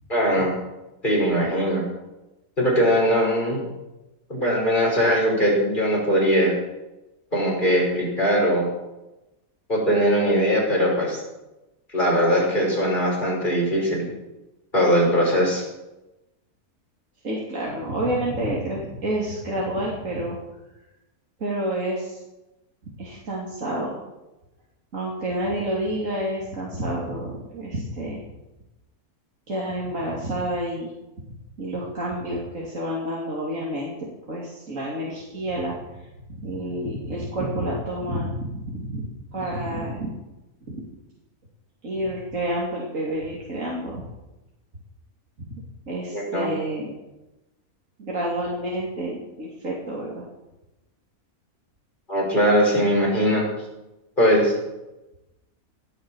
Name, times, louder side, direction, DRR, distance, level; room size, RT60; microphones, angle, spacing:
voice 1, 0.1-0.5 1.0-1.8 2.6-3.6 4.3-6.5 7.3-8.7 9.7-11.2 11.9-14.1 14.7-15.6 46.1-46.5 52.1-53.4 54.2-54.5, equal, 30° left, -3 dB, 6.3 m, -20 dB
voice 2, 17.2-20.4 21.4-22.2 23.0-24.0 24.9-28.2 29.5-30.9 31.6-33.9 34.3-40.1 40.7-40.8 41.8-44.1 45.4-47.0 48.0-50.2, right 1 dB, 60° right, -4 dB, 3.5 m, -29 dB
18.0 x 11.0 x 6.5 m, 0.98 s
omnidirectional pair, 1.6 m